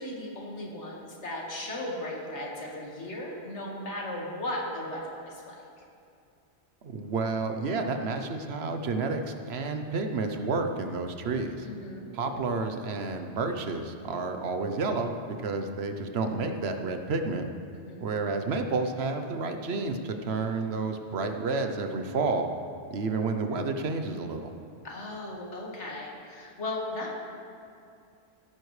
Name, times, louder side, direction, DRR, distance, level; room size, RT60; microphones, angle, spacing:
voice 1, 0.0-5.6 11.6-12.1 17.7-18.1 24.8-27.2, left 1 dB, 80° left, -2 dB, 2.1 m, -36 dB
voice 2, 6.8-11.7 12.1-17.4 18.0-22.5 22.9-24.5, right 3 dB, 65° right, 6 dB, 1.0 m, -30 dB
16.5 x 9.8 x 3.2 m, 2.5 s
omnidirectional pair, 1.2 m